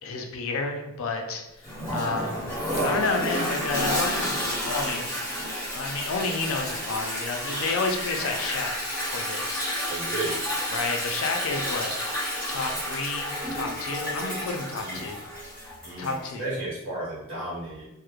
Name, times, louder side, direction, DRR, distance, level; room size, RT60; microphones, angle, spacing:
voice 1, 0.0-4.4 4.6-5.1 5.7-9.7 10.7-11.9 12.5-15.2 15.6-16.4, left 3 dB, 65° left, 3 dB, 0.4 m, -31 dB
Toilet flush, 1.6-16.3, equal, 10° right, 1.2 m, -30 dB
voice 2, 9.9-10.4 11.5-11.6 14.8-15.1 15.8-17.9, right 2 dB, 55° right, -6 dB, 0.9 m, -34 dB
3.0 x 2.0 x 2.3 m, 0.93 s
head